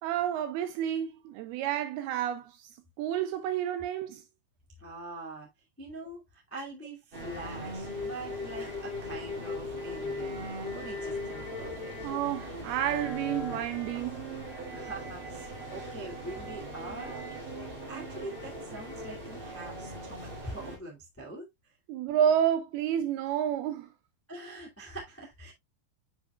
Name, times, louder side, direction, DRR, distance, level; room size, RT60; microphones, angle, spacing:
voice 1, 0.0-4.2 12.0-14.2 21.9-23.9, right 10 dB, 80° right, 2.3 m, -30 dB
voice 2, 4.8-5.5 5.8-11.9 14.7-17.3 17.9-21.4 24.3-25.5, right 2 dB, 15° left, 0.5 m, -43 dB
sound 1, 7.1-20.8, left 1 dB, 15° right, 2.0 m, -39 dB
9.4 x 5.2 x 2.3 m
omnidirectional pair, 4.9 m